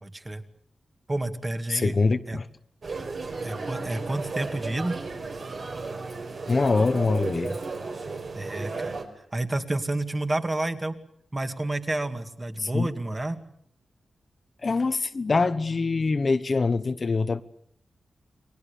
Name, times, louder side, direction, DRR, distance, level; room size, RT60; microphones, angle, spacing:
voice 1, 0.0-0.4 1.1-1.9 2.3-2.4 3.4-5.0 8.3-11.0 11.3-13.4, right 2 dB, 20° right, 2.3 m, -30 dB
voice 2, 1.7-2.5 6.5-7.6 12.6-12.9 14.6-17.4, left 3 dB, 40° left, 1.0 m, -24 dB
sound 1, 2.8-9.0, right 3 dB, 55° right, 5.0 m, -34 dB
30.0 x 23.0 x 7.0 m
wide cardioid pair, 130°, 0 cm